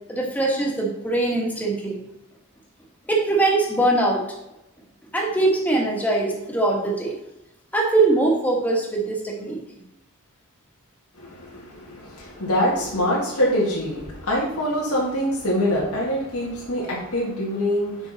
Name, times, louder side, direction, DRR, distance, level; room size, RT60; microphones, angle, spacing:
voice 1, 0.1-2.0 3.1-4.2 5.1-7.2 7.7-9.6, right 2 dB, 5° left, -1 dB, 1.5 m, -22 dB
voice 2, 11.2-18.1, equal, 85° left, -5 dB, 1.8 m, -24 dB
7.0 x 5.8 x 4.1 m, 0.90 s
head